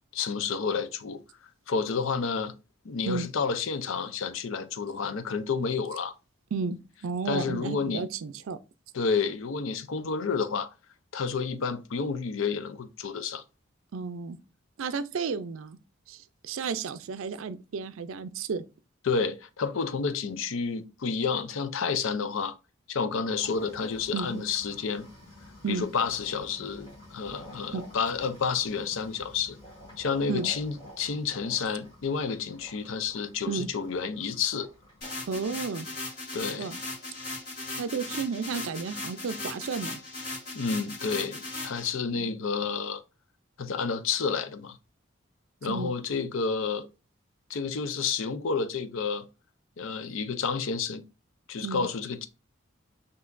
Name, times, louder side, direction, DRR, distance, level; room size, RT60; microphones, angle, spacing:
voice 1, 0.1-1.2 1.7-2.5 2.8-6.1 7.3-8.1 8.9-10.7 11.1-13.4 19.0-22.6 22.9-25.1 25.7-29.6 30.0-34.7 36.3-36.7 40.5-43.0 43.6-44.8 45.6-46.9 47.5-49.3 49.8-51.0 51.5-52.3, left 5 dB, 80° left, 0.5 m, -30 dB
voice 2, 7.0-8.6 13.9-14.4 14.8-15.8 16.1-18.6 24.1-24.4 25.6-25.9 27.7-27.8 30.3-30.5 33.5-33.7 35.3-35.9 36.6-36.8 37.8-40.0 42.2-42.4 45.7-46.0 51.6-51.9, right 5 dB, 85° right, 0.4 m, -32 dB
sound 1, 23.4-35.4, left 1 dB, 25° left, 2.0 m, -50 dB
trance trumpet loop, 35.0-41.9, left 2 dB, 50° left, 2.0 m, -38 dB
5.7 x 2.8 x 2.5 m
head